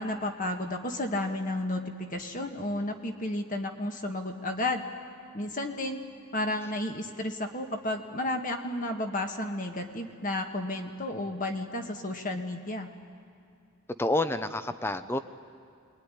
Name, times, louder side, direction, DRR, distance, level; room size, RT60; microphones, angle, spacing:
voice 1, 0.0-4.8 5.3-6.0 6.3-12.9, left 1 dB, 35° left, 4 dB, 1.7 m, -32 dB
voice 2, 14.0-15.2, left 2 dB, 10° left, 11 dB, 0.7 m, -28 dB
27.0 x 21.5 x 10.0 m, 2.3 s
head